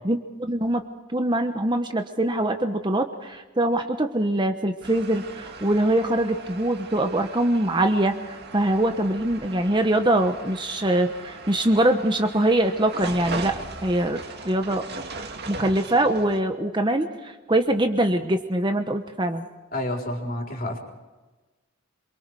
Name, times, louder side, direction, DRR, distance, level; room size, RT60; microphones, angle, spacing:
voice 1, 0.0-0.8 1.1-14.8 15.5-19.4, right 1 dB, 20° right, 7 dB, 1.1 m, -23 dB
sound 1, 4.8-16.4, right 3 dB, 50° right, 2.2 m, -38 dB
voice 2, 19.7-20.8, left 1 dB, 45° left, 2 dB, 4.3 m, -29 dB
27.0 x 23.5 x 4.8 m, 1.2 s
head